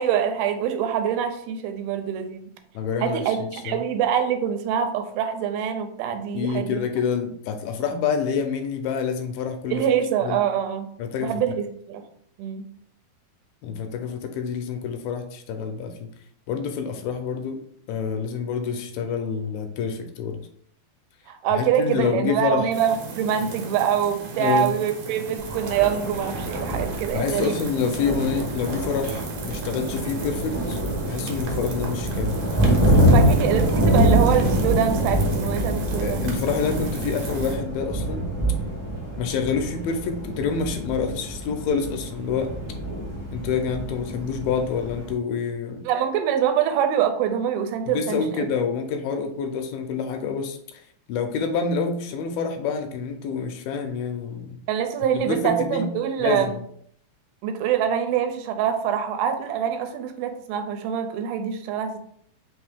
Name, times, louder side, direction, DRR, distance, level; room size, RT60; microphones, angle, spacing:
voice 1, 0.0-2.5 3.0-6.9 9.7-10.9 11.2-12.0 12.4-12.6 21.3-27.6 33.1-36.3 45.9-48.2 54.7-56.5 57.4-62.0, right 9 dB, 85° right, 7 dB, 2.5 m, -24 dB
voice 2, 2.8-3.8 6.3-9.8 10.2-10.4 11.0-11.4 13.6-16.1 16.5-17.6 17.9-20.4 21.5-22.7 24.4-24.8 27.1-30.8 31.1-33.3 36.0-38.3 39.1-42.5 43.3-45.9 47.9-54.6 55.1-55.9 56.2-56.6, left 6 dB, 80° left, 5 dB, 2.3 m, -27 dB
sound 1, 22.7-37.6, right 4 dB, 70° right, 2.1 m, -35 dB
Thunder, 25.4-45.1, right 1 dB, 40° right, 0.4 m, -25 dB
5.5 x 2.7 x 3.4 m, 0.65 s
omnidirectional pair, 4.3 m